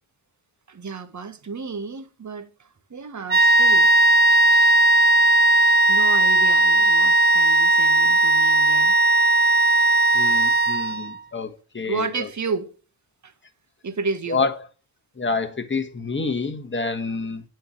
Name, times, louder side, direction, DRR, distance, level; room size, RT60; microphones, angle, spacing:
voice 1, 0.7-2.5 2.9-3.9 5.9-8.9 11.9-12.7 13.2-13.3 13.8-14.4, right 4 dB, 35° right, 1.4 m, -31 dB
sound 1, 3.3-11.2, right 1 dB, 20° right, 0.8 m, -17 dB
voice 2, 10.1-12.3 14.3-14.5 15.2-17.4, left 4 dB, 25° left, 1.4 m, -27 dB
8.9 x 4.5 x 6.5 m
supercardioid pair, 45°, 49 cm